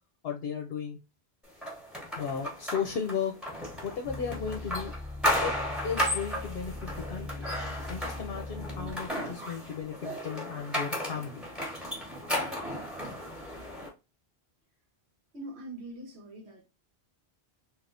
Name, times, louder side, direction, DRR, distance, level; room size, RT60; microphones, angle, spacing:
voice 1, 0.2-1.0 2.1-3.3 3.8-4.9 5.4-5.6 5.8-7.5 7.9-11.4, left 7 dB, 65° left, 0.9 m, -35 dB
sound 1, 1.6-13.9, equal, ahead, 1.2 m, -34 dB
sound 2, 4.0-9.2 9.8-9.9, left 2 dB, 40° right, 0.9 m, -40 dB
voice 2, 15.3-16.6, right 1 dB, 75° right, 1.5 m, -43 dB
3.4 x 3.0 x 2.5 m
omnidirectional pair, 1.1 m